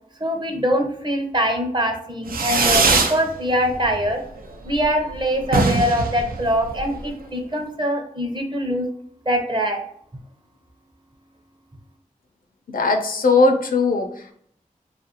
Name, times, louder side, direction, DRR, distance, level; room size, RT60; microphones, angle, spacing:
voice 1, 0.2-4.2 4.6-8.9 9.3-9.8, equal, 30° right, 4 dB, 0.6 m, -23 dB
Fireworks, 2.3-3.2 3.6-4.1 4.4-4.5 4.7-4.8 5.1-5.2 5.4-7.1, right 3 dB, 85° right, 0.4 m, -21 dB
voice 2, 12.7-14.3, left 3 dB, 75° left, 4 dB, 0.5 m, -19 dB
2.6 x 2.4 x 2.9 m, 0.65 s
wide cardioid pair, 50°, 15 cm